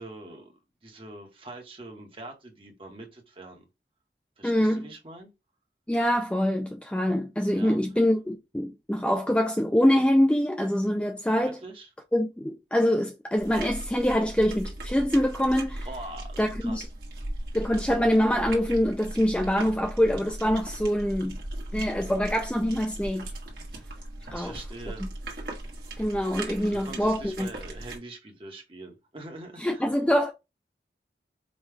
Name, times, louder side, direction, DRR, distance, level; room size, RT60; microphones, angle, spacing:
voice 1, 0.0-3.6 4.4-5.3 7.5-7.8 11.4-11.9 15.8-16.8 24.3-25.1 26.6-29.9, right 2 dB, 30° right, 1.0 m, -43 dB
voice 2, 4.4-4.8 5.9-11.6 12.1-15.9 16.4-16.8 17.5-21.4 21.7-23.3 24.3-24.6 26.0-27.5 29.6-30.3, equal, 5° left, 0.3 m, -24 dB
sound 1, 13.4-28.0, right 1 dB, 60° right, 1.4 m, -38 dB
5.2 x 2.3 x 3.3 m
head